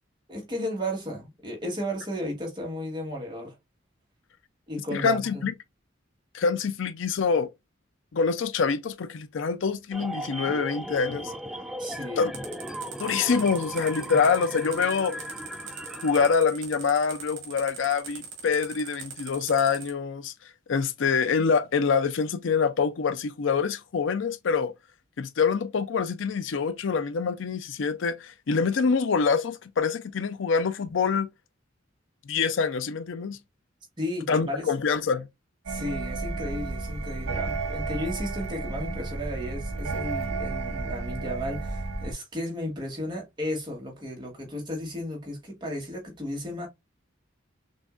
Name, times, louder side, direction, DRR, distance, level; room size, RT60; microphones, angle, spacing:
voice 1, 0.3-3.5 4.7-5.5 11.8-12.3 34.0-34.7 35.7-46.7, equal, 20° right, 1.3 m, -34 dB
voice 2, 4.9-5.5 6.3-7.5 8.1-11.3 12.2-12.3 13.0-15.2 16.0-20.3 20.7-24.7 25.2-31.3 32.3-33.4 34.3-35.3, left 5 dB, 70° left, 0.5 m, -25 dB
sound 1, 9.9-16.4, equal, ahead, 0.3 m, -37 dB
sound 2, 12.3-19.9, right 7 dB, 60° right, 2.1 m, -41 dB
sound 3, 35.7-42.1, right 3 dB, 90° right, 0.9 m, -32 dB
6.1 x 2.5 x 2.4 m
head